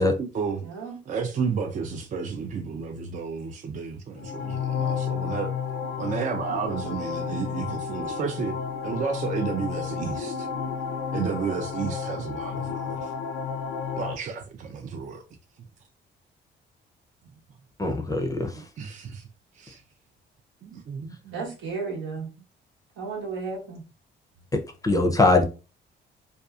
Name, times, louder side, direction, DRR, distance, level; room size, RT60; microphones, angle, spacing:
voice 1, 0.0-0.6 1.1-5.5 6.0-8.6 8.8-10.5 11.1-13.1 14.0-15.2 18.6-19.3 19.5-19.8 20.6-21.4, right 6 dB, 40° right, 0.4 m, -32 dB
voice 2, 0.6-1.0 21.3-22.3 23.0-23.8, right 4 dB, 85° right, 1.0 m, -33 dB
sound 1, 4.1-14.1, left 6 dB, 75° left, 0.5 m, -31 dB
voice 3, 17.8-18.5 24.5-25.4, left 2 dB, 15° left, 0.5 m, -22 dB
2.6 x 2.3 x 2.3 m
cardioid pair, 90°, 20 cm